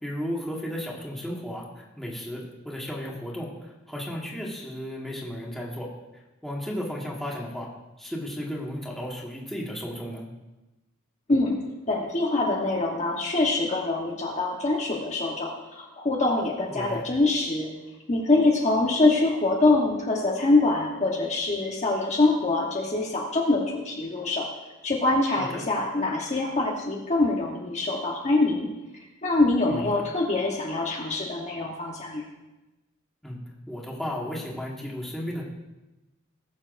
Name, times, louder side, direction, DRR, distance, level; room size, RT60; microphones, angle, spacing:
voice 1, 0.0-5.9 6.4-7.7 8.0-10.2 16.7-17.0 25.4-25.6 29.7-29.9 33.2-33.4 33.7-35.4, equal, ahead, -4 dB, 1.7 m, -34 dB
voice 2, 11.9-17.7 18.1-24.5 24.8-28.7 29.2-32.2, left 2 dB, 35° left, -2 dB, 1.1 m, -24 dB
19.5 x 7.2 x 2.6 m, 1.0 s
head